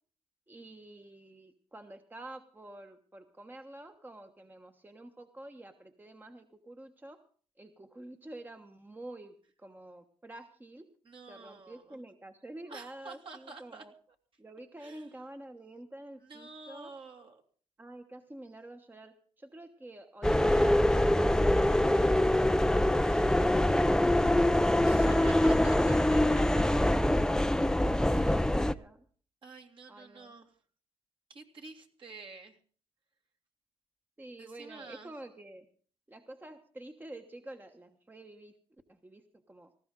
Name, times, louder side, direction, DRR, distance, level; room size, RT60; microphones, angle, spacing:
voice 1, 0.5-7.2 7.6-10.9 11.3-13.9 14.4-16.9 17.8-25.9 26.5-29.0 29.9-30.3 34.2-35.7 36.1-38.6 38.9-39.7, right 1 dB, 15° right, 6 dB, 1.2 m, -49 dB
voice 2, 11.0-12.0 12.7-13.9 14.8-15.1 16.2-17.4 24.8-26.6 28.2-28.6 29.4-30.5 31.3-32.6 34.4-35.1, right 3 dB, 50° right, 3 dB, 2.6 m, -49 dB
sound 1, 20.2-28.7, left 1 dB, 5° left, 0.6 m, -24 dB
18.5 x 15.0 x 3.8 m, 0.43 s
cardioid pair, 70°, 11 cm